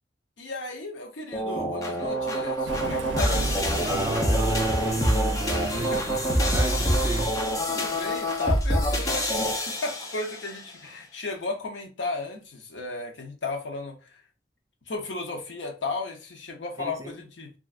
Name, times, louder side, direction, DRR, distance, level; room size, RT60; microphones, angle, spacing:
voice 1, 0.4-3.5 5.7-6.0 7.7-14.2 14.9-17.5, left 3 dB, 85° left, 0.8 m, -34 dB
sound 1, 1.3-10.6, equal, 20° left, 0.7 m, -26 dB
Thunder, 2.6-7.3, right 3 dB, 85° right, 0.5 m, -36 dB
voice 2, 3.8-7.4 16.8-17.2, right 2 dB, 20° right, 0.4 m, -32 dB
3.3 x 2.5 x 2.4 m
head